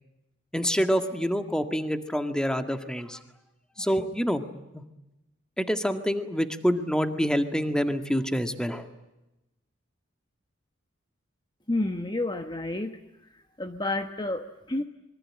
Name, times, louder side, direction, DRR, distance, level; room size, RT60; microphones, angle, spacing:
voice 1, 0.5-3.2 3.8-4.4 4.7-4.8 5.6-8.9, equal, 5° left, 8 dB, 1.9 m, -26 dB
voice 2, 11.7-12.9 13.6-14.8, left 2 dB, 20° left, 7 dB, 1.2 m, -30 dB
26.0 x 23.5 x 8.7 m, 0.96 s
head